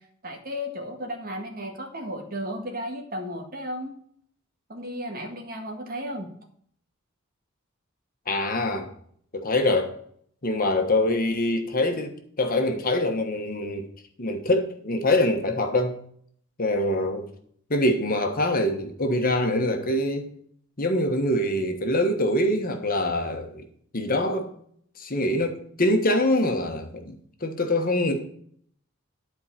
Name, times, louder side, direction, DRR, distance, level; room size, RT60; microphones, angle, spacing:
voice 1, 0.2-3.9 4.7-6.3, equal, 45° right, 1.8 m, -34 dB
voice 2, 8.3-8.9 9.3-9.9 10.4-13.9 14.2-16.0 16.6-17.3 17.7-20.3 20.8-23.6 23.9-24.5 25.0-28.2, left 1 dB, 45° left, 1.4 m, -24 dB
11.0 x 4.7 x 7.4 m
head